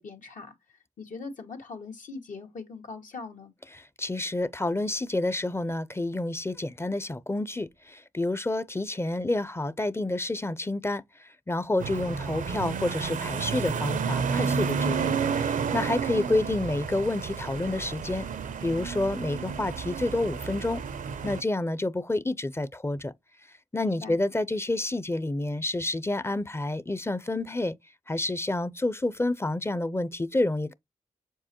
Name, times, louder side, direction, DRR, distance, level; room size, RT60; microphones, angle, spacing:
voice 1, 0.0-3.5 16.1-16.4 23.8-24.2, left 4 dB, 75° left, 1.8 m, -42 dB
voice 2, 3.7-18.3 18.6-20.8 21.2-23.1 23.7-27.7 28.1-30.7, left 2 dB, 20° left, 0.6 m, -29 dB
sound 1, 11.8-21.4, right 6 dB, 80° right, 0.6 m, -31 dB
7.1 x 4.6 x 2.9 m
cardioid pair, 50°, 13 cm